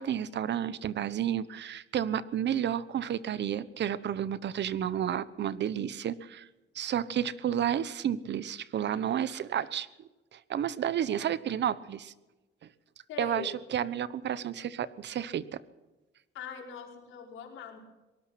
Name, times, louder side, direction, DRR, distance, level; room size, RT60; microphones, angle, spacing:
voice 1, 0.0-6.5 6.7-9.9 10.3-12.1 13.2-15.6, right 9 dB, 60° right, 16 dB, 1.1 m, -31 dB
voice 2, 13.1-13.6 16.3-17.8, left 6 dB, 85° left, 1 dB, 5.3 m, -41 dB
23.0 x 19.0 x 6.0 m, 1.1 s
cardioid pair, 90°, 20 cm